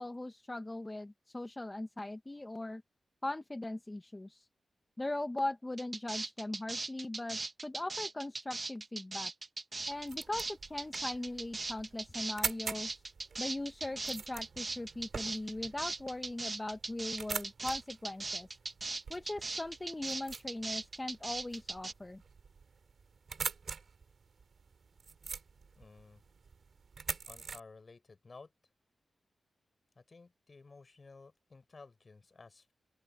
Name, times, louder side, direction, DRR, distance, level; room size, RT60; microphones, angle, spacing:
voice 1, 0.0-2.8 3.2-4.5 5.0-9.3 9.9-13.0 13.4-18.5 19.1-22.2, left 2 dB, 25° left, 1.3 m, -40 dB
sound 1, 5.8-21.9, right 3 dB, 40° right, 1.4 m, -39 dB
sound 2, 9.8-27.6, right 5 dB, 70° right, 3.2 m, -45 dB
voice 2, 25.8-26.2 27.3-28.5 30.0-32.7, left 4 dB, 50° left, 6.1 m, -55 dB
open air
cardioid pair, 50°, 0 cm